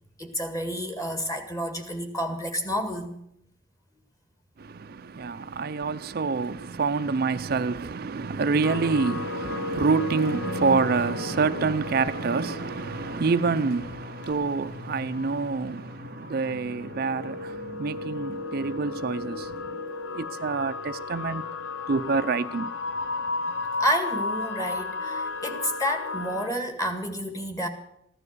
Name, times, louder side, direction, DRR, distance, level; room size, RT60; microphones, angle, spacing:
voice 1, 0.2-3.2 23.8-27.7, equal, 20° left, 2.0 m, -30 dB
voice 2, 4.6-19.8 20.1-21.5 21.9-23.5, right 4 dB, 55° right, 0.5 m, -27 dB
sound 1, 8.6-26.5, left 3 dB, 70° left, 0.8 m, -34 dB
15.0 x 12.0 x 6.8 m
head